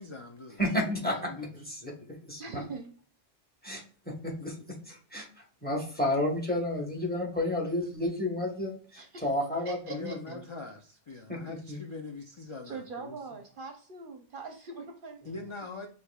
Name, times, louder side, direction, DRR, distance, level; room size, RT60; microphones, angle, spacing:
voice 1, 0.0-0.6 1.0-1.5 9.9-13.4 15.2-15.9, left 3 dB, 45° left, 0.4 m, -43 dB
voice 2, 0.6-2.6 3.6-4.5 4.9-10.2 11.3-11.8, left 1 dB, 10° left, 1.0 m, -32 dB
voice 3, 2.4-2.9 9.0-9.3 9.6-10.4 11.1-11.2 12.6-15.3, right 4 dB, 55° right, 0.7 m, -42 dB
6.4 x 2.8 x 2.2 m
omnidirectional pair, 1.2 m